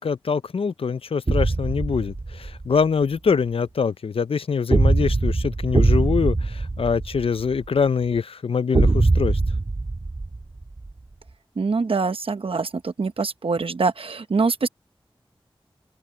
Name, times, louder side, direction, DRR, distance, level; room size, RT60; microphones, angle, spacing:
voice 1, 0.0-9.4, left 5 dB, 90° left, 0.5 m, -24 dB
sound 1, 1.3-2.6 4.7-7.7 8.7-10.9, right 3 dB, 50° right, 1.6 m, -21 dB
voice 2, 11.6-14.7, right 4 dB, 80° right, 0.8 m, -24 dB
open air
wide cardioid pair, 80°, 9 cm